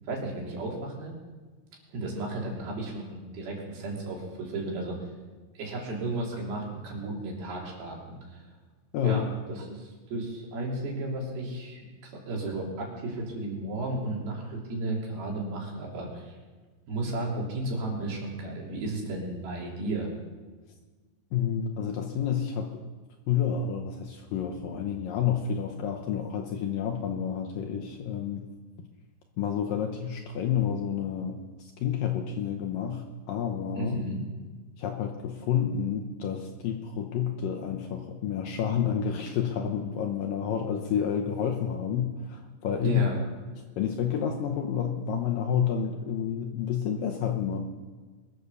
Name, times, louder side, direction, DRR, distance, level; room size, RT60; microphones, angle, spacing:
voice 1, 0.1-1.1 1.9-5.1 5.5-8.4 9.0-16.3 16.9-20.1 33.8-34.2 42.8-43.2, right 2 dB, 65° right, -2 dB, 4.9 m, -34 dB
voice 2, 8.9-9.3 21.3-22.8 23.3-28.5 29.4-34.0 34.8-43.0 43.8-47.6, left 8 dB, 75° left, 3 dB, 2.2 m, -29 dB
22.5 x 8.2 x 6.8 m, 1.4 s
omnidirectional pair, 4.8 m